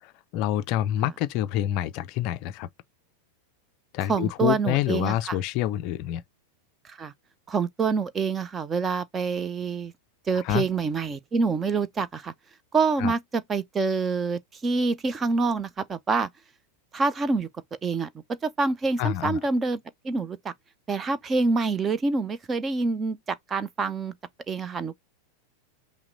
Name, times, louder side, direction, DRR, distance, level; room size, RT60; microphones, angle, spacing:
voice 1, 0.0-2.7 3.9-6.2 10.4-10.7 13.0-13.1 19.0-19.4, left 13 dB, 40° left, 0.4 m, -27 dB
voice 2, 4.1-5.4 6.8-7.1 7.5-9.9 10.3-12.3 12.7-16.3 16.9-17.5 17.8-18.1 18.4-19.8 20.0-20.5 20.9-24.1 24.5-24.9, right 4 dB, 20° right, 0.5 m, -26 dB
5.7 x 2.1 x 3.8 m
figure-of-eight pair, 90°, 0 cm